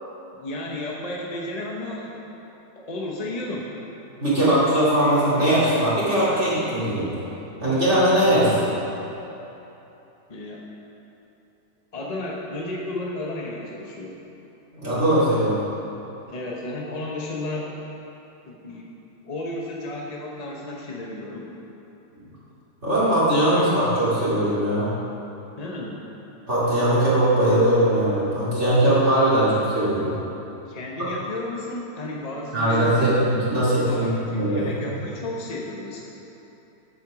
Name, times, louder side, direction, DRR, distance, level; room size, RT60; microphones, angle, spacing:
voice 1, 0.3-2.2 2.8-3.7 10.3-10.7 11.9-14.2 16.3-17.8 18.5-18.9 19.2-21.5 23.5-23.7 25.6-26.0 30.7-33.1 33.6-36.0, left 2 dB, 30° left, -2 dB, 0.8 m, -33 dB
voice 2, 4.2-7.1 7.6-8.7 14.7-15.6 22.8-24.9 26.5-30.1 32.5-34.6, right 1 dB, 40° right, -10 dB, 2.6 m, -20 dB
8.6 x 7.7 x 6.0 m, 3.0 s
omnidirectional pair, 1.8 m